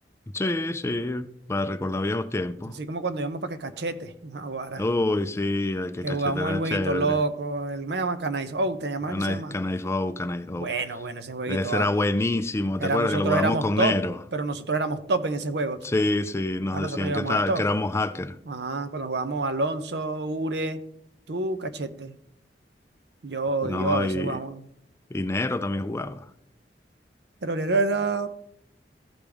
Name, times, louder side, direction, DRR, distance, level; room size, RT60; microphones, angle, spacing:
voice 1, 0.3-2.8 4.8-7.2 9.1-10.7 11.5-14.1 15.8-18.4 23.6-24.4 25.1-26.2, left 2 dB, 15° left, 0.4 m, -27 dB
voice 2, 2.6-4.8 6.0-9.5 10.6-11.9 12.8-14.0 14.3-15.8 16.7-17.6 18.5-20.8 21.3-22.2 23.2-24.6 27.4-28.3, right 3 dB, 70° right, 0.8 m, -28 dB
14.5 x 5.2 x 3.5 m
head